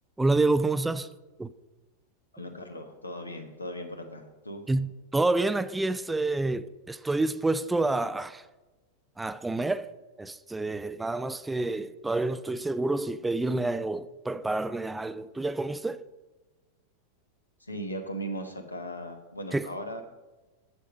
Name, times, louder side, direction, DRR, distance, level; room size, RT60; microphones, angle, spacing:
voice 1, 0.2-1.1 1.4-1.5 4.7-8.4 9.2-9.9 10.2-16.0 19.5-19.7, right 2 dB, 10° right, 0.3 m, -28 dB
voice 2, 2.3-4.6 17.6-20.0, equal, 80° left, 1.1 m, -38 dB
8.2 x 7.4 x 5.2 m
figure-of-eight pair, 90°, 0 cm